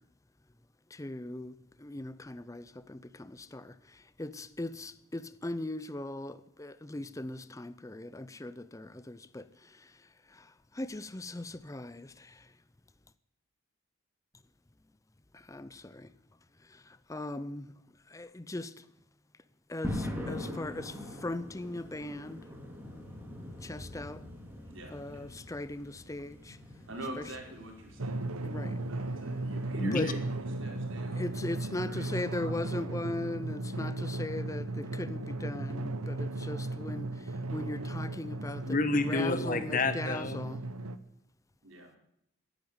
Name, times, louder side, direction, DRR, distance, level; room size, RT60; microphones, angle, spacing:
voice 1, 1.0-1.5 1.8-2.6 2.9-3.0 3.5-3.6 4.2-9.4 10.8-11.9 15.5-15.7 17.1-17.6 18.1-18.7 19.7-19.9 20.3-20.9 21.2-22.4 23.7-24.2 24.9-26.3 28.5-28.7 29.9-30.0 31.2-37.1 37.5-38.6 39.1-39.6 39.9-40.6, left 2 dB, 15° left, 0.5 m, -38 dB
sound 1, 19.8-32.8, left 1 dB, 10° right, 2.8 m, -44 dB
voice 2, 24.7-25.2 26.9-32.5 41.6-41.9, right 1 dB, 60° right, 4.4 m, -45 dB
Drum, 28.0-41.0, right 2 dB, 90° right, 1.0 m, -36 dB
voice 3, 29.8-30.1 38.6-40.5, left 3 dB, 40° left, 1.3 m, -29 dB
16.5 x 10.5 x 8.0 m
head